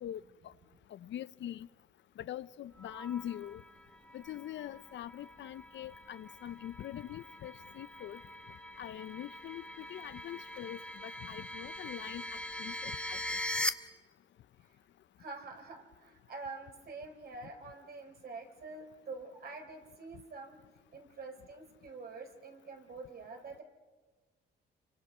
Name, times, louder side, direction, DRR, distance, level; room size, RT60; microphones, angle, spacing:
voice 1, 0.0-0.5 0.9-1.7 2.2-3.6 4.1-8.2 8.8-13.4, left 11 dB, 70° left, 0.7 m, -43 dB
sound 1, 2.8-13.7, left 1 dB, 5° left, 1.2 m, -42 dB
voice 2, 15.2-20.6 20.9-23.6, right 3 dB, 50° right, 4.0 m, -46 dB
28.5 x 24.5 x 5.6 m
cardioid pair, 90°, 20 cm